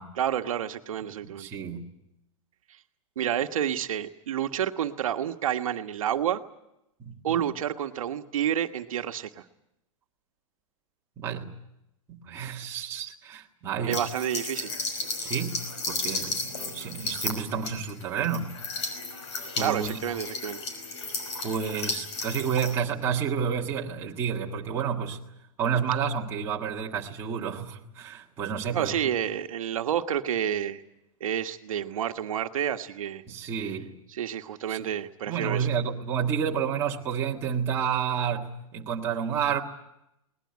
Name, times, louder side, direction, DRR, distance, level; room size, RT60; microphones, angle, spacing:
voice 1, 0.1-1.5 2.7-2.8 3.2-6.4 7.2-9.4 13.9-14.8 19.6-20.6 28.7-30.8 31.2-33.2 34.1-35.7, right 10 dB, 75° right, 6 dB, 1.4 m, -29 dB
voice 2, 1.2-1.8 7.0-7.4 11.2-11.5 12.1-14.0 15.2-15.6 15.9-18.5 19.5-20.0 21.4-25.2 25.6-28.9 33.3-33.9 34.7-34.8 35.3-39.6, right 7 dB, 15° right, -2 dB, 1.6 m, -30 dB
sound 1, 13.9-22.7, left 3 dB, 55° left, 5.4 m, -34 dB
22.0 x 19.5 x 9.5 m, 0.85 s
supercardioid pair, 180°, 17 cm